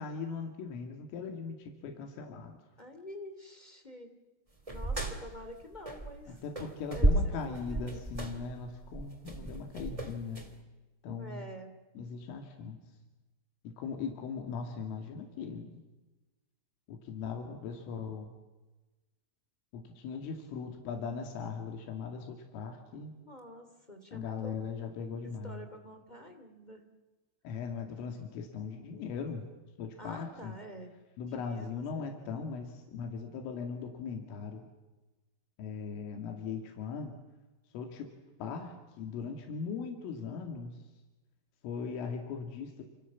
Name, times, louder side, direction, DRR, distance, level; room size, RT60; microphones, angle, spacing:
voice 1, 0.0-2.6 6.3-10.4 11.0-11.4 12.0-12.8 13.6-15.8 16.9-18.3 19.7-23.1 24.1-25.6 27.4-29.5 29.8-30.5 31.2-34.7 35.6-37.1 37.7-38.1 38.4-40.8 41.6-42.8, left 5 dB, 90° left, 3 dB, 5.0 m, -39 dB
voice 2, 2.8-4.1 4.7-6.4 6.9-8.0 11.0-11.7 23.2-24.5 25.2-26.8 30.0-30.9 31.2-32.0, equal, 15° left, 6 dB, 1.6 m, -48 dB
sound 1, 4.7-6.3 6.5-10.5, right 2 dB, 15° right, 1.4 m, -32 dB
29.0 x 27.5 x 7.3 m, 1.1 s
omnidirectional pair, 5.6 m